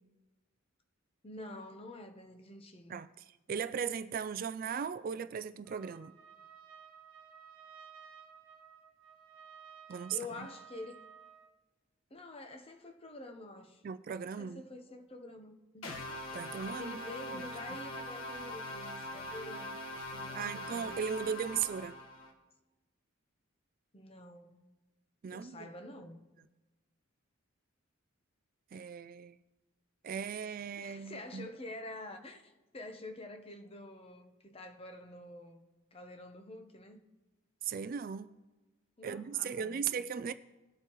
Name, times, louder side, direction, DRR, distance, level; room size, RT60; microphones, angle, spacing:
voice 1, 1.2-3.0 10.1-11.1 12.1-13.8 14.3-16.0 16.7-20.9 23.9-24.6 25.3-26.2 30.8-35.6 35.9-37.0 39.0-39.9, left 2 dB, 25° left, 0.9 m, -47 dB
voice 2, 2.9-6.1 9.9-10.5 13.8-14.6 16.3-17.0 17.3-17.4 20.3-22.0 25.2-25.7 28.7-29.4 30.0-31.5 37.6-38.3 39.0-40.3, right 7 dB, 40° right, 0.3 m, -37 dB
Trumpet, 5.6-11.5, right 7 dB, 75° right, 1.3 m, -55 dB
sound 1, 15.8-22.3, left 1 dB, 70° left, 1.5 m, -42 dB
19.5 x 8.1 x 3.1 m
head